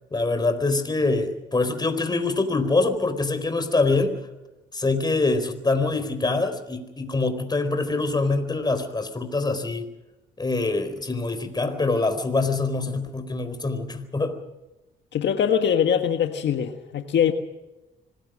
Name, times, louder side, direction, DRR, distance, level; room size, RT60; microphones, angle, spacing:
voice 1, 0.1-4.1 4.7-9.9 10.4-14.4, left 3 dB, 20° left, 8 dB, 4.3 m, -24 dB
voice 2, 15.1-17.3, left 8 dB, 65° left, 6 dB, 1.6 m, -22 dB
26.0 x 19.5 x 6.4 m, 1.0 s
cardioid pair, 90°, 20 cm